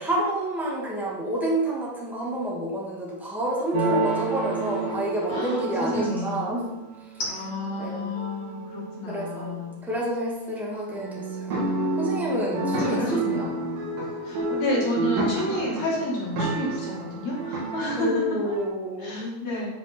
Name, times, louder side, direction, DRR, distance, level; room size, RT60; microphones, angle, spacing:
voice 1, 0.0-6.7 7.8-8.1 9.0-11.7 12.0-13.5 18.0-19.4, right 1 dB, ahead, -5 dB, 0.6 m, -29 dB
sound 1, 3.7-6.9 7.4-7.7 8.1-9.0 9.3-9.5 10.9-18.6, right 3 dB, 85° right, 4.0 m, -30 dB
voice 2, 5.3-6.5 7.2-9.8 12.5-13.8 14.2-18.5 19.0-19.7, left 1 dB, 55° left, -5 dB, 3.2 m, -30 dB
9.5 x 5.4 x 4.4 m, 1.0 s
omnidirectional pair, 4.0 m